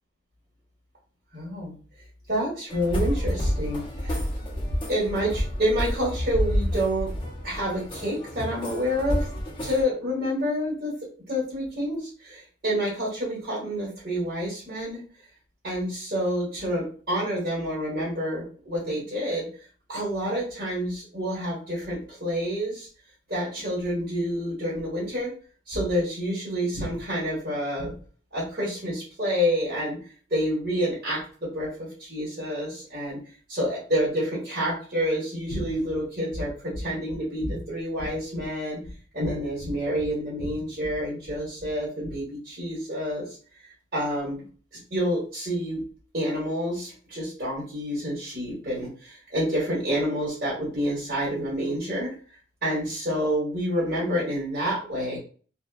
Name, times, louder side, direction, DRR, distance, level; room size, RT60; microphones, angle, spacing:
voice 1, 1.3-1.7 2.3-4.2 4.9-7.1 7.4-9.3 9.6-10.9 11.3-15.0 15.6-19.5 19.9-22.9 23.3-25.3 25.7-27.9 28.3-30.0 30.3-33.2 33.5-43.4 43.9-44.4 44.9-45.8 46.1-52.1 52.6-55.2, equal, 50° right, -9 dB, 1.2 m, -28 dB
sound 1, 2.7-9.8, equal, 25° left, 0.6 m, -29 dB
2.4 x 2.2 x 2.3 m, 0.41 s
head